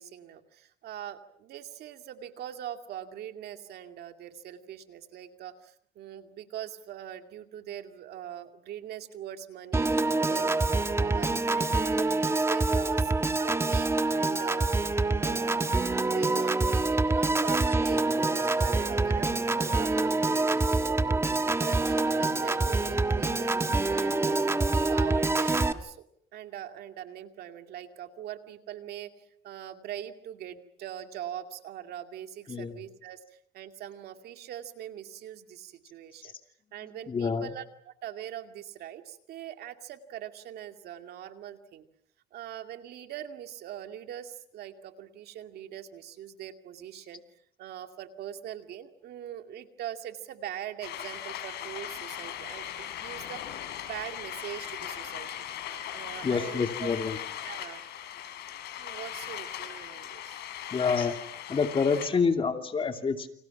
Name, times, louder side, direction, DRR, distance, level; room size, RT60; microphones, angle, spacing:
voice 1, 0.0-9.9 10.3-13.1 13.4-14.7 15.0-15.6 16.0-16.8 17.1-21.0 21.4-23.6 23.9-26.0 26.3-36.3 36.7-41.9 42.3-47.2 47.6-53.4 53.8-55.5 55.9-56.9 57.4-57.8 58.8-60.5, right 10 dB, 70° right, 7 dB, 2.3 m, -42 dB
Piano / Organ, 9.7-25.7, right 3 dB, 15° right, 1.4 m, -26 dB
voice 2, 32.5-32.8 36.2-36.3 37.1-37.5 56.2-57.2 60.7-61.2 61.5-63.3, left 5 dB, 30° left, 6 dB, 2.7 m, -27 dB
sound 1, 50.8-62.1, left 11 dB, 80° left, 4.6 m, -39 dB
29.5 x 26.0 x 6.1 m, 0.69 s
cardioid pair, 110°, 17 cm